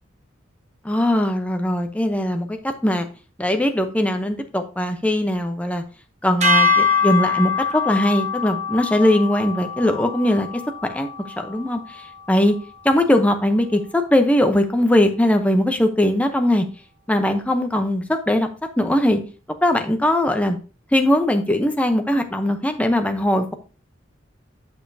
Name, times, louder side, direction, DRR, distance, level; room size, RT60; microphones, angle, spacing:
voice 1, 0.8-3.1 3.4-5.8 6.2-10.5 10.9-11.1 11.4-12.6 12.8-16.6 17.1-18.5 18.8-19.2 19.6-20.6 20.9-23.5, left 1 dB, 5° left, 5 dB, 0.7 m, -20 dB
sound 1, 6.4-12.7, left 4 dB, 35° right, 1.3 m, -24 dB
7.9 x 6.7 x 2.7 m, 0.34 s
head